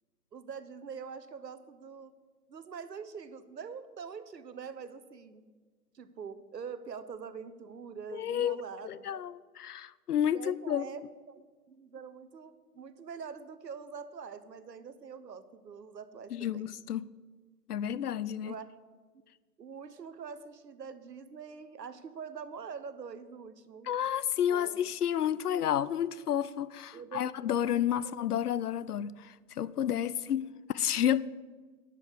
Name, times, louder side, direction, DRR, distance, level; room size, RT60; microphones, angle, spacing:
voice 1, 0.3-2.1 2.5-5.5 5.9-9.2 10.3-16.7 18.4-18.7 19.6-23.9 24.5-24.8 26.9-27.2 28.0-28.1 30.5-30.6, right 6 dB, 90° right, 1.0 m, -44 dB
voice 2, 8.1-8.6 8.8-10.9 16.3-17.1 17.7-18.5 23.8-31.3, left 10 dB, 70° left, 0.5 m, -31 dB
10.5 x 5.4 x 6.6 m
hypercardioid pair, 155°, 48 cm